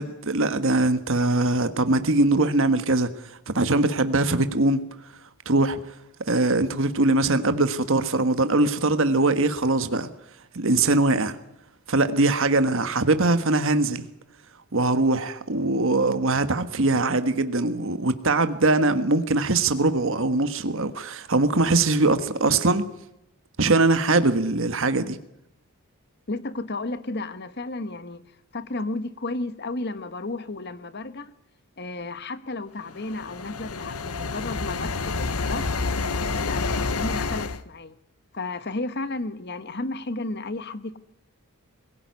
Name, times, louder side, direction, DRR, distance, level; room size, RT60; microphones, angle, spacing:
voice 1, 0.0-3.1 3.5-4.8 5.4-5.8 6.3-10.1 10.5-11.4 11.9-14.1 14.7-22.8 23.6-25.2, right 2 dB, 60° right, 1.5 m, -22 dB
voice 2, 26.3-28.2 28.5-31.3 31.8-35.7 36.3-37.9 38.3-41.0, left 2 dB, 50° left, 1.3 m, -33 dB
sound 1, 32.9-37.6, left 4 dB, 90° left, 1.2 m, -28 dB
22.5 x 16.5 x 9.6 m
head